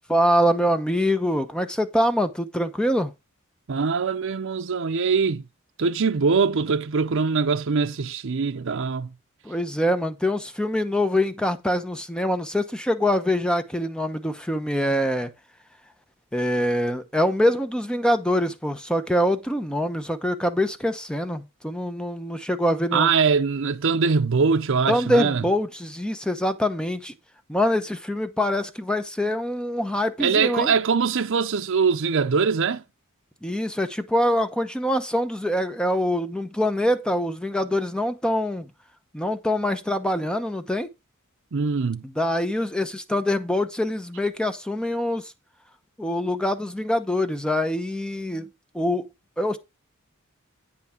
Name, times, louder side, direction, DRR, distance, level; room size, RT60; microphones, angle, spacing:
voice 1, 0.1-3.1 9.4-15.3 16.3-23.1 24.9-27.1 27.5-30.7 33.4-38.7 39.1-40.9 42.0-45.3 46.0-48.5 48.7-49.1 49.4-49.6, left 1 dB, 5° left, 0.9 m, -24 dB
voice 2, 3.7-5.4 5.8-9.1 22.9-25.4 30.2-32.8 41.5-42.0, right 5 dB, 65° right, 0.6 m, -22 dB
9.3 x 5.9 x 4.4 m
head